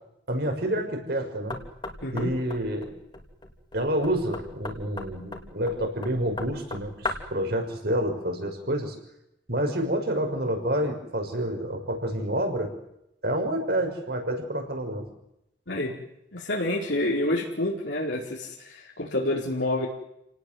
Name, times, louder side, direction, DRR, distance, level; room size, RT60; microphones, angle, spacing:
voice 1, 0.3-1.6 2.1-2.9 3.7-8.9 9.5-12.7 13.2-15.1, right 1 dB, 60° right, 4 dB, 6.2 m, -28 dB
Knock, 1.5-7.4, left 2 dB, 25° left, 3.1 m, -38 dB
voice 2, 2.0-2.3 15.7-15.9 16.3-19.9, left 1 dB, 80° left, -3 dB, 4.6 m, -28 dB
29.5 x 18.5 x 7.9 m, 0.82 s
head